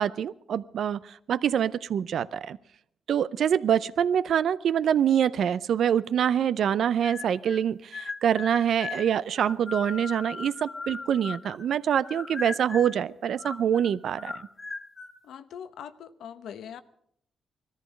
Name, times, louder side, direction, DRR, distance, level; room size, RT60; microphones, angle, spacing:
voice 1, 0.0-2.6 3.1-14.3, right 9 dB, 70° right, 17 dB, 0.5 m, -25 dB
sound 1, 7.0-7.6 7.9-11.7 12.0-13.0 13.4-15.2, left 4 dB, 35° left, 1.5 m, -38 dB
voice 2, 15.2-16.8, left 8 dB, 85° left, 12 dB, 0.8 m, -42 dB
18.5 x 14.0 x 5.2 m, 0.70 s
cardioid pair, 100°, 0 cm